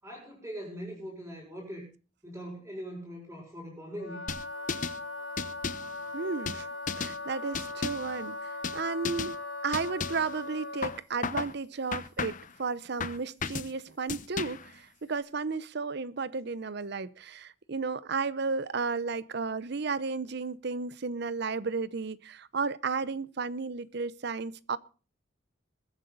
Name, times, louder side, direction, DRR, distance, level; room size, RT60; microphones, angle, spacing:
voice 1, 0.0-1.9 2.2-4.2, equal, 15° right, 6.0 m, -41 dB
Wind instrument woodwind instrument, 3.9-11.0, left 2 dB, 90° left, 2.3 m, -39 dB
sound 1, 4.3-5.0 5.4-5.9 6.5-7.2 7.5-8.1 8.6-8.8 9.0-9.3 9.7-10.3 10.8-11.5 11.9-12.5 13.0-13.7 14.1-14.7, left 5 dB, 45° left, 0.9 m, -34 dB
voice 2, 6.1-6.7 7.0-9.3 9.6-24.8, right 4 dB, 60° right, 0.7 m, -33 dB
21.0 x 9.8 x 3.9 m
head